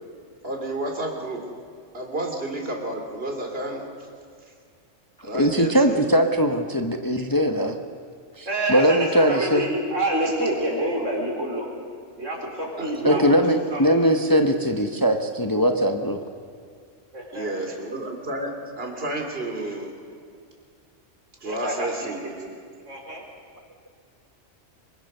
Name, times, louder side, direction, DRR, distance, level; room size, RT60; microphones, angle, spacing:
voice 1, 0.4-1.4 1.9-3.9 5.2-6.1 12.8-13.2 17.3-20.0 21.4-22.5, right 1 dB, 50° right, 2 dB, 3.1 m, -31 dB
voice 2, 5.3-7.8 8.4-9.6 13.0-16.2, equal, 20° left, 4 dB, 1.0 m, -20 dB
voice 3, 8.5-11.7 12.2-13.2 13.7-14.0 17.1-17.8 21.4-22.1 22.9-23.2, right 1 dB, 75° right, 0 dB, 4.8 m, -27 dB
26.0 x 23.0 x 6.7 m, 2.2 s
omnidirectional pair, 1.3 m